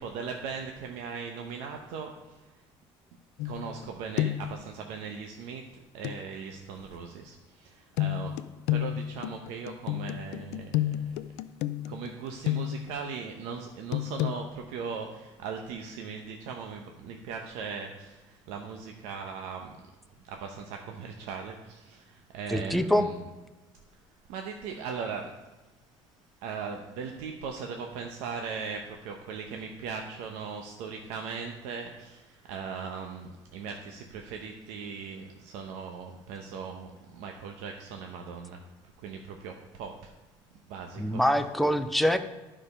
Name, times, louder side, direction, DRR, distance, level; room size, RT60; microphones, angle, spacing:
voice 1, 0.0-2.4 3.4-8.3 8.7-11.1 11.8-19.7 20.2-23.2 24.3-25.5 26.4-38.6 39.0-40.1 40.7-41.2, right 5 dB, 85° right, 3 dB, 0.8 m, -39 dB
sound 1, 3.4-3.9 4.2-4.6 6.0-6.2 8.0-13.0 13.9-14.4, left 14 dB, 80° left, 0.4 m, -30 dB
voice 2, 22.5-23.1 41.0-42.2, equal, ahead, 8 dB, 0.4 m, -24 dB
11.0 x 5.0 x 5.5 m, 1.2 s
cardioid pair, 180°, 11 cm